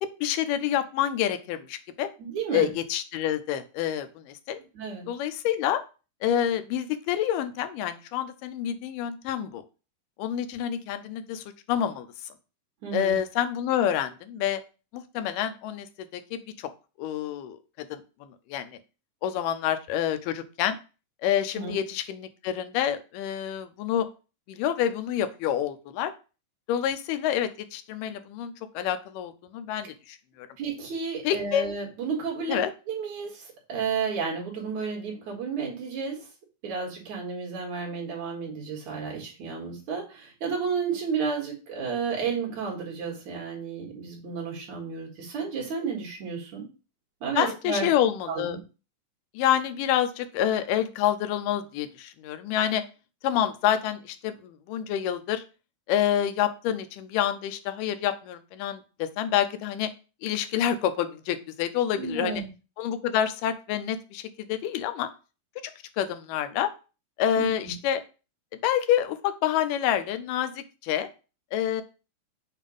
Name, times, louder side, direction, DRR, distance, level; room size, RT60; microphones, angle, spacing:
voice 1, 0.0-2.1 2.5-4.6 5.1-5.8 6.2-9.6 10.2-12.1 12.9-14.6 14.9-16.7 17.0-18.8 19.2-20.8 21.2-24.1 24.5-26.1 26.7-30.5 31.2-31.7 32.5-32.7 47.4-48.6 49.3-52.8 53.2-55.4 55.9-59.9 60.2-62.4 62.8-65.1 66.0-66.7 67.2-68.0 68.6-71.1 71.5-71.8, left 10 dB, 85° left, 9 dB, 2.3 m, -28 dB
voice 2, 2.2-2.7 4.7-5.1 12.8-13.1 21.5-21.7 30.6-32.6 32.9-36.2 36.6-46.7 47.2-47.9 48.3-48.6 62.0-62.5 67.4-67.7, right 5 dB, 65° right, -1 dB, 3.0 m, -32 dB
7.3 x 2.5 x 5.3 m, 0.33 s
omnidirectional pair, 3.7 m